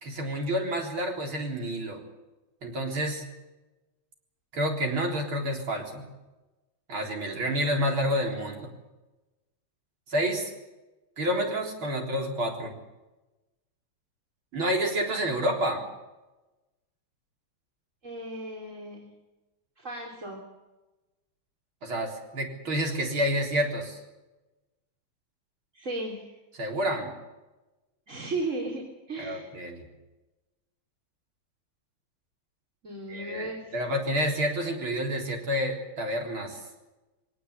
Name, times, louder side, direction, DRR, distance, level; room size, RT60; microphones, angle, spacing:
voice 1, 0.0-2.0 2.6-3.2 4.5-6.0 6.9-8.7 10.1-10.5 11.2-12.7 14.5-15.8 21.8-24.0 26.6-27.1 29.2-29.8 33.1-36.6, equal, 75° right, 2 dB, 4.7 m, -29 dB
voice 2, 18.0-19.1 19.8-20.4 25.7-26.4 28.1-28.8 29.1-29.5 32.8-33.7, right 2 dB, 35° right, -2 dB, 4.0 m, -35 dB
23.0 x 18.5 x 8.3 m, 1.1 s
omnidirectional pair, 2.3 m